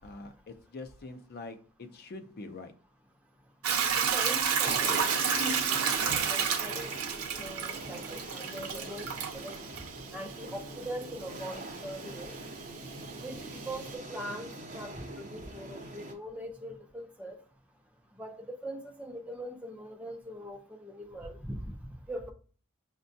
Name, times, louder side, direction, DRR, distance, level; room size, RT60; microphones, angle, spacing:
voice 1, 0.0-2.7, left 3 dB, 45° left, 8 dB, 0.5 m, -44 dB
Hiss / Toilet flush / Trickle dribble, 3.6-13.9, right 7 dB, 80° right, 0.7 m, -32 dB
voice 2, 4.1-5.1 6.0-6.9 7.3-9.6 10.1-12.3 13.2-17.4 18.2-21.8 22.1-22.3, equal, 5° right, 2 dB, 0.5 m, -41 dB
sound 1, 4.6-16.1, right 2 dB, 35° right, 0.9 m, -42 dB
6.1 x 2.2 x 2.7 m, 0.40 s
head